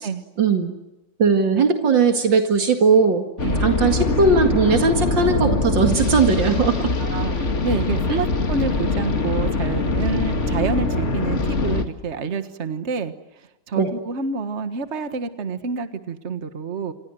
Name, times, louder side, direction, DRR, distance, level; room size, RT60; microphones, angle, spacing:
voice 1, 0.4-0.7 1.2-3.2 3.6-6.9 8.1-8.2 13.8-13.9, right 4 dB, 80° right, 4 dB, 2.8 m, -18 dB
sound 1, 3.4-11.8, left 3 dB, 40° left, 2.3 m, -23 dB
voice 2, 7.0-13.1 13.7-16.9, right 4 dB, 40° right, 9 dB, 1.7 m, -28 dB
27.5 x 27.0 x 7.7 m, 0.99 s
omnidirectional pair, 2.0 m